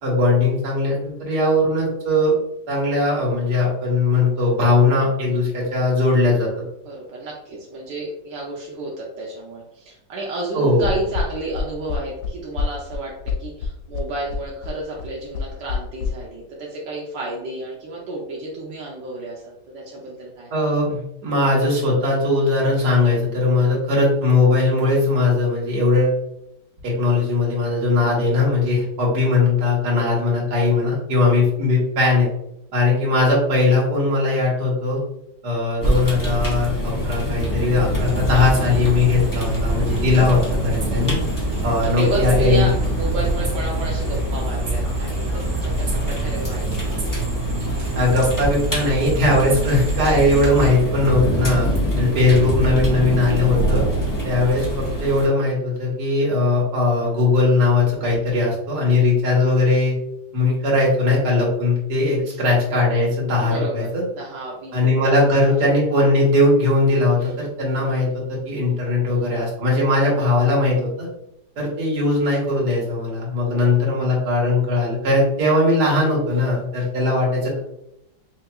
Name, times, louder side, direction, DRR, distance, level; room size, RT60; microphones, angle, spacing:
voice 1, 0.0-2.3 2.7-6.5 10.5-10.9 20.5-26.2 26.8-32.3 32.7-35.0 35.4-41.2 41.6-42.7 48.0-51.7 52.0-53.8 54.2-59.9 60.3-64.0 64.7-71.1 71.6-77.6, left 2 dB, 65° right, -4 dB, 1.9 m, -19 dB
voice 2, 6.8-20.5 41.6-46.8 51.2-51.3 51.6-52.5 62.2-62.4 63.4-65.5, right 2 dB, 85° right, -3 dB, 1.5 m, -31 dB
sound 1, 10.8-16.1, left 5 dB, 75° left, 1.1 m, -26 dB
sound 2, 35.8-55.3, right 1 dB, 35° left, 0.3 m, -25 dB
sound 3, 38.0-50.7, right 2 dB, 45° right, 1.2 m, -26 dB
5.5 x 2.8 x 2.3 m, 0.80 s
omnidirectional pair, 1.9 m